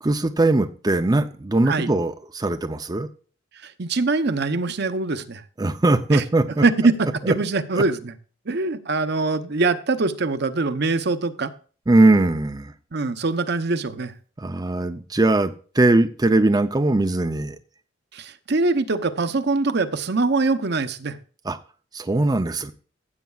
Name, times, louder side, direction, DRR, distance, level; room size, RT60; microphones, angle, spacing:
voice 1, 0.0-3.1 5.6-6.6 7.2-7.3 7.8-7.9 11.9-12.7 14.4-17.6 21.5-21.6 21.9-22.7, right 2 dB, 20° right, 7 dB, 0.5 m, -20 dB
voice 2, 3.6-5.4 6.1-6.2 6.6-8.1 8.5-11.5 12.9-14.1 18.1-21.2, right 3 dB, 55° right, 10 dB, 0.8 m, -23 dB
15.0 x 8.2 x 2.4 m, 0.39 s
head